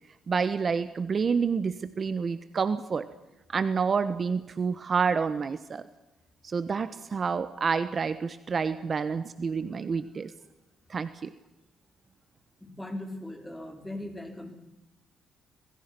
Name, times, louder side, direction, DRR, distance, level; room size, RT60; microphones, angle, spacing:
voice 1, 0.3-3.1 3.5-5.9 6.4-10.3 10.9-11.3, right 5 dB, 40° right, 12 dB, 1.2 m, -28 dB
voice 2, 12.6-14.5, left 1 dB, 5° left, 4 dB, 5.1 m, -39 dB
26.5 x 20.5 x 6.2 m, 0.94 s
cardioid pair, 90°, 0 cm